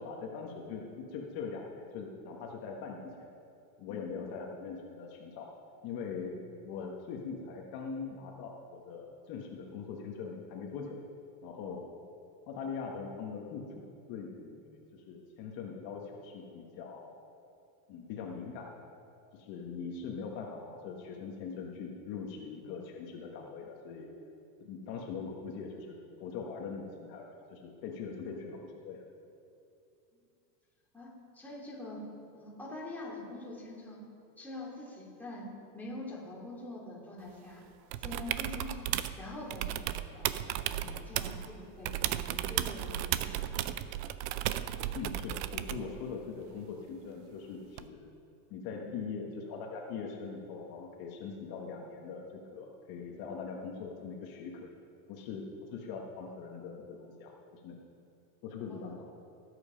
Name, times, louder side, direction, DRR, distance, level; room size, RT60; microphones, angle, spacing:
voice 1, 0.0-3.3 3.8-5.5 5.8-11.0 11.4-11.8 12.5-17.1 17.9-18.7 19.3-24.1 24.6-29.0 44.9-48.1 48.5-54.7 55.1-57.8 58.4-59.0, left 5 dB, 50° left, 0 dB, 1.5 m, -42 dB
voice 2, 30.9-32.0 32.3-34.0 34.4-35.5 35.7-37.6 38.0-38.9 39.2-43.8 48.8-48.9 58.7-58.9, left 2 dB, 5° left, -6 dB, 2.8 m, -45 dB
sound 1, 37.9-39.2 39.5-41.5 41.8-45.9 47.8-47.9, right 13 dB, 65° right, 0.7 m, -34 dB
17.5 x 8.2 x 5.1 m, 2.7 s
supercardioid pair, 145°, 48 cm